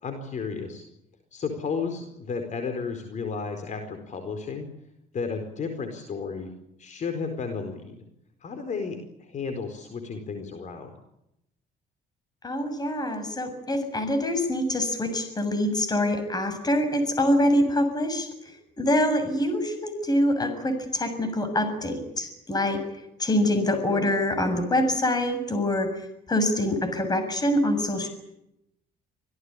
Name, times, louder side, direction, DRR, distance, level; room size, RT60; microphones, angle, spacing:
voice 1, 0.0-0.8 1.3-4.7 5.1-6.5 6.8-8.0 8.4-10.9, left 5 dB, 45° left, 6 dB, 4.6 m, -33 dB
voice 2, 12.4-18.3 18.8-22.8 23.2-28.1, left 1 dB, 25° left, 9 dB, 7.1 m, -25 dB
26.5 x 17.5 x 9.9 m, 0.83 s
cardioid pair, 110°, 17 cm